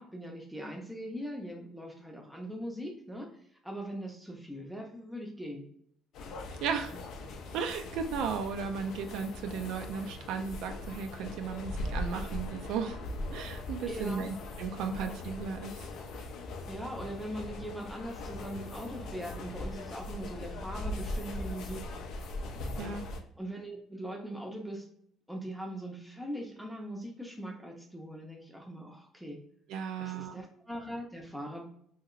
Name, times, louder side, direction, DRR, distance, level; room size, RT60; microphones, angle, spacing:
voice 1, 0.0-3.3 3.6-5.6 6.9-7.0 13.9-14.3 16.3-21.9 22.8-23.0 23.4-24.8 25.3-29.4 30.0-31.7, equal, ahead, 0 dB, 0.6 m, -41 dB
sound 1, 6.1-23.2, left 2 dB, 60° left, 0.4 m, -40 dB
voice 2, 6.6-6.9 7.5-13.0 13.3-15.7 22.8-23.1 29.7-30.4, right 6 dB, 80° right, 7 dB, 0.3 m, -35 dB
2.8 x 2.8 x 2.4 m, 0.67 s
cardioid pair, 150°, 0 cm